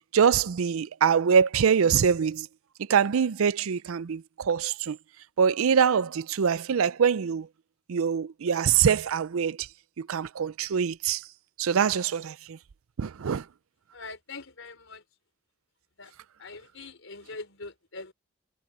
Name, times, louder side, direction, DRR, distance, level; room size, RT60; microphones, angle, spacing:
voice 1, 0.1-2.5 2.9-5.0 5.4-7.5 7.9-9.7 10.0-11.2 11.6-12.6 13.0-13.4, right 7 dB, 90° right, 0.5 m, -24 dB
voice 2, 13.9-15.0 16.0-16.1 16.4-18.1, left 3 dB, 70° left, 4.2 m, -43 dB
head